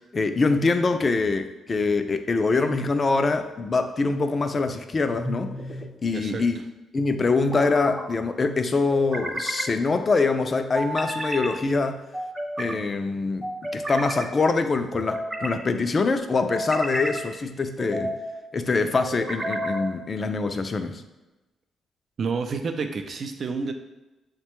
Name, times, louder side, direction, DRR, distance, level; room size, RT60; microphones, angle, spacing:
voice 1, 0.1-5.5 6.0-6.6 6.9-12.0 12.6-13.5 13.7-18.2 18.5-21.0, left 3 dB, 40° left, 8 dB, 0.4 m, -24 dB
sound 1, 5.2-5.9 7.3-8.0 8.9-9.7 10.7-11.5 12.1-12.8 13.4-14.3 14.9-15.6 16.3-17.2 17.8-18.3 19.1-19.9, right 1 dB, 25° right, 0.9 m, -31 dB
voice 2, 6.1-6.5 22.2-23.7, right 4 dB, 55° right, 6 dB, 0.4 m, -29 dB
6.5 x 2.2 x 3.0 m, 1.1 s
supercardioid pair, 65°, 0 cm